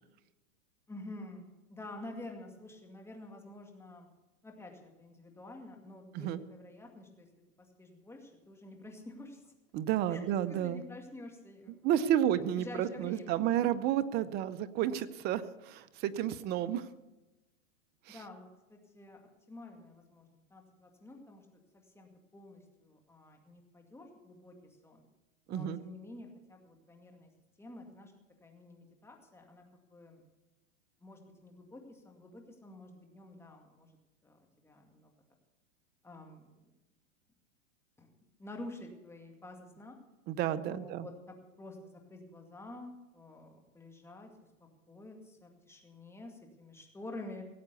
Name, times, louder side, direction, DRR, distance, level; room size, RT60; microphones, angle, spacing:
voice 1, 0.9-4.1 4.4-7.3 7.8-9.4 10.1-11.9 12.6-13.4 18.1-19.2 19.5-21.4 21.7-24.5 24.8-25.0 25.5-27.3 27.6-28.1 28.4-29.6 29.9-30.2 31.0-33.9 34.2-34.4 34.6-35.1 36.0-36.5 38.0-38.1 38.4-40.0 40.6-41.1 41.6-44.3 44.9-47.4, left 2 dB, 5° left, 2 dB, 2.2 m, -49 dB
voice 2, 9.7-10.8 11.8-16.9 18.1-18.2 25.5-25.8 40.3-41.1, right 11 dB, 25° right, 15 dB, 0.6 m, -31 dB
17.5 x 8.0 x 6.8 m, 1.0 s
hypercardioid pair, 140°, 40 cm